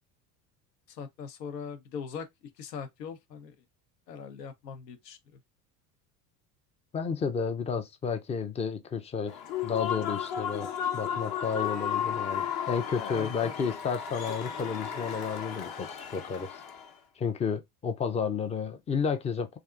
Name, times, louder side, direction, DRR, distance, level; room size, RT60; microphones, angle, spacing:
voice 1, 0.9-2.3 2.6-3.6 4.1-5.4 12.9-13.6, left 6 dB, 80° left, 0.8 m, -40 dB
voice 2, 6.9-9.4 9.6-10.7 10.9-16.6 17.2-19.6, left 6 dB, 15° left, 0.4 m, -31 dB
Human voice / Cheering / Applause, 9.3-16.9, left 8 dB, 45° left, 0.9 m, -34 dB
3.4 x 2.5 x 2.3 m
hypercardioid pair, 75°, 49 cm